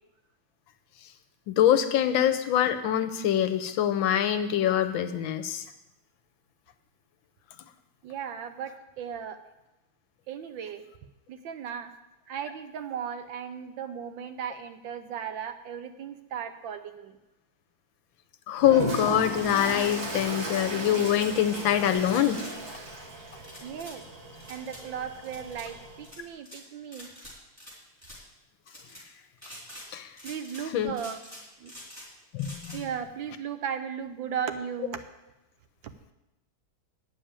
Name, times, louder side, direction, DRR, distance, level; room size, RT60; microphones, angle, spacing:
voice 1, 1.5-5.6 18.5-22.4 29.9-30.1 30.7-30.9 32.3-32.8, left 10 dB, 75° left, 10 dB, 1.3 m, -24 dB
voice 2, 8.0-9.4 10.3-10.8 11.3-11.9 12.3-17.2 23.6-24.0 24.5-27.1 30.2-31.2 31.6-31.7 32.7-35.0 35.8-35.9, right 8 dB, 70° right, 9 dB, 1.3 m, -36 dB
Toilet flush, 18.6-26.1, right 1 dB, 45° right, 2.1 m, -36 dB
sound 1, 22.0-22.5 23.4-24.0 24.4-24.8 25.2-25.7 26.0-26.6 26.9-27.7 28.0-28.2 28.7-29.0 29.4-29.9 30.2-30.7 30.9-32.1 32.4-32.8, equal, 5° right, 3.7 m, -46 dB
9.0 x 7.0 x 8.7 m, 0.97 s
omnidirectional pair, 2.4 m